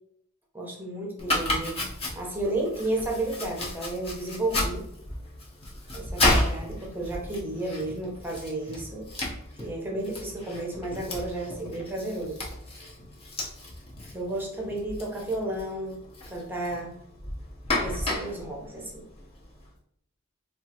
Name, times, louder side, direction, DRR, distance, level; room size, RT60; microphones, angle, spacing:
voice 1, 0.5-1.8 2.1-4.9 5.9-9.1 9.6-12.4 14.1-16.0 16.3-17.0 17.8-19.1, right 2 dB, 10° right, -1 dB, 0.7 m, -32 dB
Domestic sounds home sounds, 1.2-19.6, left 1 dB, 30° left, 0.8 m, -33 dB
4.2 x 2.4 x 2.8 m, 0.71 s
head